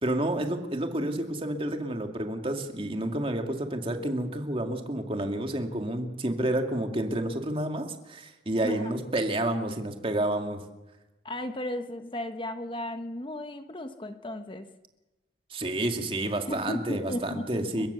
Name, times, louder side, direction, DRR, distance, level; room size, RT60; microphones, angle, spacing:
voice 1, 0.0-10.6 15.5-17.9, right 1 dB, 30° right, 4 dB, 2.3 m, -30 dB
voice 2, 11.2-14.7 16.4-17.9, left 1 dB, 30° left, 8 dB, 1.1 m, -35 dB
30.0 x 16.5 x 6.9 m, 1.0 s
head